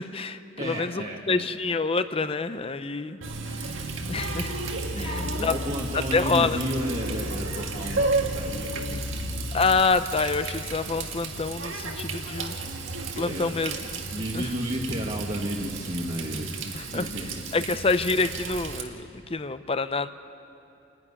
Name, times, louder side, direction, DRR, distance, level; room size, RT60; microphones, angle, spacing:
voice 1, 0.0-3.2 3.5-3.8 4.1-4.6 5.0-5.5 5.9-6.6 9.5-12.5 13.2-13.8 14.3-14.5 16.7-17.1 17.5-20.1, left 4 dB, 30° left, 12 dB, 0.7 m, -27 dB
voice 2, 0.6-1.5 4.9-9.6 13.2-13.6 14.1-17.3, equal, 35° right, -2 dB, 1.5 m, -33 dB
Water tap faucet, 3.2-18.8, right 3 dB, 80° right, 1.9 m, -33 dB
sound 1, 3.9-9.8, left 2 dB, 65° left, 1.2 m, -37 dB
28.5 x 11.0 x 9.8 m, 2.6 s
head